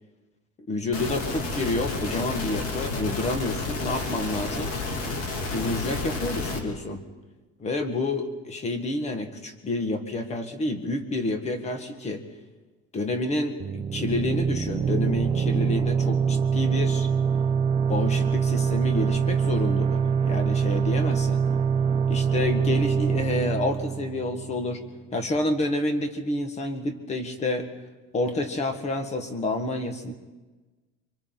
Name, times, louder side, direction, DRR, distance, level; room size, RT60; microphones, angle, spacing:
voice 1, 0.7-4.7 5.5-7.0 7.6-12.2 12.9-17.1 17.9-21.4 22.1-24.8 25.1-27.7 28.1-30.1, left 2 dB, 20° left, 7 dB, 1.8 m, -29 dB
sound 1, 0.9-6.6, left 3 dB, 50° left, 3.2 m, -31 dB
sound 2, 13.6-25.0, right 6 dB, 20° right, 0.8 m, -24 dB
27.5 x 25.0 x 4.1 m, 1.2 s
cardioid pair, 165°, 30 cm